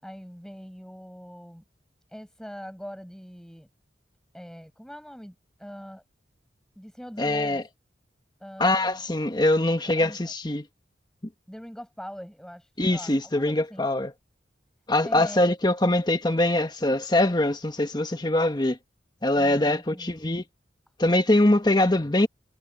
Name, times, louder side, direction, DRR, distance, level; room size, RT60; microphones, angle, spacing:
voice 1, 0.0-1.6 2.1-3.7 4.3-6.0 6.7-7.6 8.4-9.0 9.8-10.3 11.5-13.8 15.0-15.5 19.4-20.2, equal, 5° left, 6.3 m, -42 dB
voice 2, 7.2-7.6 8.6-10.6 12.8-14.1 14.9-18.8 19.2-20.4 21.0-22.3, left 1 dB, 25° left, 1.3 m, -23 dB
head